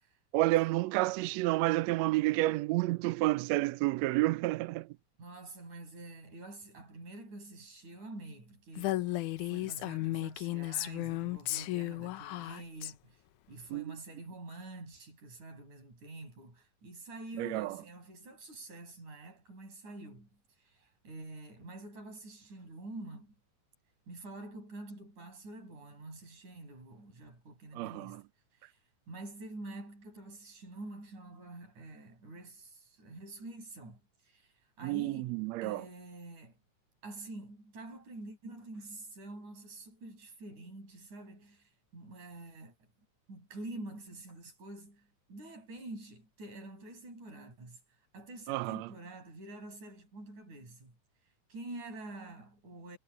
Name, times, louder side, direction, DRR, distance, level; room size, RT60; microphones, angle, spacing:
voice 1, 0.3-4.9 13.7-13.8 17.4-17.8 27.7-28.2 34.8-35.8 48.5-48.9, right 18 dB, 85° right, 1.6 m, -30 dB
voice 2, 5.2-9.2 9.5-13.2 13.5-23.3 24.1-28.2 28.5-28.8 29.1-35.3 35.6-36.6 37.0-42.9 43.3-47.8 48.1-51.0 51.5-53.0, right 2 dB, 65° right, 8.9 m, -47 dB
Female speech woman speaking, 8.8-12.9, left 16 dB, 75° left, 2.2 m, -34 dB
omnidirectional pair, 3.7 m